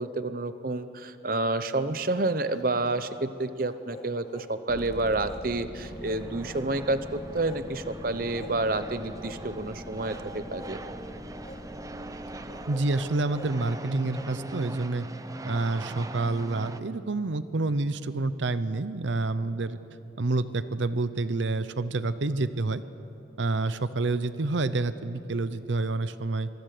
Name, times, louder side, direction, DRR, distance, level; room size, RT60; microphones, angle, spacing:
voice 1, 0.0-10.8, right 2 dB, 50° right, 11 dB, 0.8 m, -29 dB
sound 1, 2.1-3.2 3.6-4.5 4.9-5.5 5.8-6.7 7.0-7.9 8.3-8.6 9.2-9.4 9.9-10.8 11.4-11.6 12.5-14.3, left 1 dB, 35° left, 2.5 m, -48 dB
sound 2, 4.7-12.7, equal, 55° left, 3.1 m, -44 dB
sound 3, 5.8-16.8, right 1 dB, 20° right, 0.7 m, -41 dB
voice 2, 12.7-15.1 15.4-19.8 20.2-22.8 23.4-26.5, right 2 dB, 80° right, 13 dB, 0.7 m, -28 dB
26.0 x 23.0 x 6.7 m, 2.8 s
head